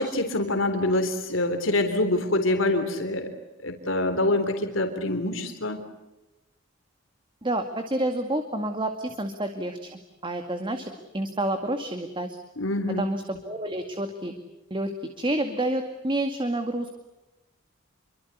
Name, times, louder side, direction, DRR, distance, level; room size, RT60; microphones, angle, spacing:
voice 1, 0.0-3.3 3.6-5.8 12.6-13.1, left 2 dB, 80° left, 7 dB, 3.5 m, -25 dB
voice 2, 7.4-12.4 13.0-14.3 14.7-17.0, right 1 dB, 25° right, 6 dB, 2.2 m, -29 dB
28.5 x 24.5 x 8.3 m, 1.0 s
head